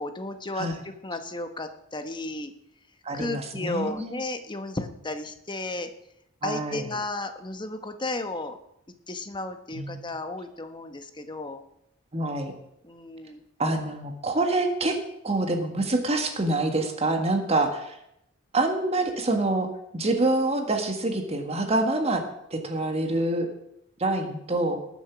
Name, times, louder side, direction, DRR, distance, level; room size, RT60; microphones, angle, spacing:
voice 1, 0.0-2.5 3.1-5.9 6.4-8.6 9.1-11.6 12.8-13.4, left 2 dB, 25° left, 7 dB, 1.2 m, -33 dB
voice 2, 3.0-4.2 6.4-6.9 9.7-10.1 12.1-12.5 13.6-15.0 15.2-18.0 18.5-19.7 19.9-22.2 22.5-23.5 24.0-24.8, right 2 dB, 30° right, 4 dB, 1.6 m, -26 dB
20.0 x 7.3 x 6.1 m, 0.78 s
head